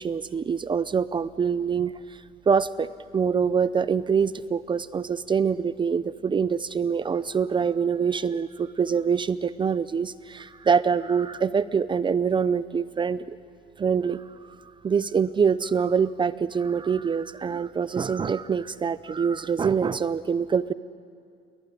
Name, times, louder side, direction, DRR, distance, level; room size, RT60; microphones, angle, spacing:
voice 1, 0.0-1.9 2.5-2.9 3.1-13.4 13.8-14.2 14.8-20.7, right 6 dB, 30° right, 15 dB, 0.6 m, -25 dB
29.0 x 22.0 x 9.5 m, 2.3 s
cardioid pair, 110°, 17 cm